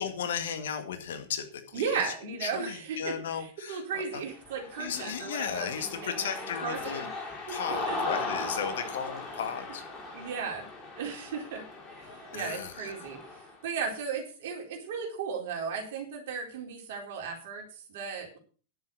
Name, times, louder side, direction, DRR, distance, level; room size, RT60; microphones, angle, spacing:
voice 1, 0.0-4.2 4.8-7.1 7.5-9.8 12.3-13.1, left 8 dB, 60° left, 8 dB, 2.0 m, -35 dB
voice 2, 1.7-6.4 6.6-7.1 7.5-8.0 10.1-10.7 11.0-11.6 12.0-13.2 13.6-18.4, right 6 dB, 55° right, 1 dB, 4.1 m, -36 dB
Cheering, 4.3-13.6, left 2 dB, 20° left, 6.2 m, -38 dB
10.5 x 8.0 x 6.9 m, 0.39 s
figure-of-eight pair, 90°, 0 cm